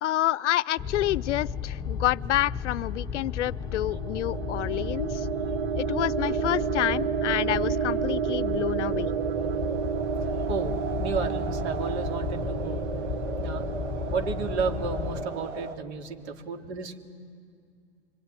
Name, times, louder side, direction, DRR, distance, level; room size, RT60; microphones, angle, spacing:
voice 1, 0.0-5.3 5.8-9.1, left 14 dB, 80° left, 22 dB, 0.6 m, -28 dB
sound 1, 0.8-15.3, left 6 dB, 10° left, 0.8 m, -34 dB
sound 2, 3.6-15.5, right 9 dB, 50° right, 1.3 m, -31 dB
sound 3, 6.2-15.8, right 4 dB, 90° right, 2.0 m, -39 dB
voice 2, 10.5-12.8 13.4-13.6 14.1-17.0, right 5 dB, 70° right, 4 dB, 2.6 m, -32 dB
25.5 x 23.0 x 9.7 m, 2.3 s
hypercardioid pair, 135°, 35 cm